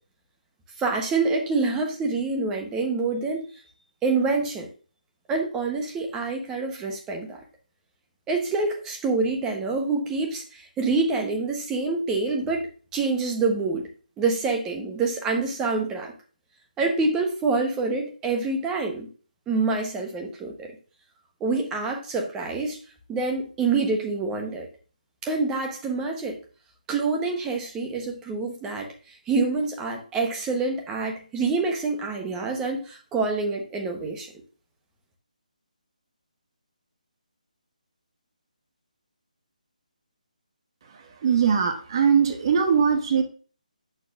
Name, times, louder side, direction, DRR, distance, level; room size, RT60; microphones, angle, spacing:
voice 1, 0.8-3.5 4.0-4.7 5.3-7.4 8.3-13.9 14.2-16.1 16.8-19.1 19.5-20.7 21.4-22.8 23.1-24.7 25.2-26.4 26.9-28.9 29.3-34.3, right 3 dB, 10° right, 3 dB, 1.0 m, -26 dB
voice 2, 41.2-43.2, right 6 dB, 35° right, 5 dB, 1.0 m, -21 dB
7.5 x 6.6 x 2.5 m, 0.37 s
figure-of-eight pair, 160°, 4 cm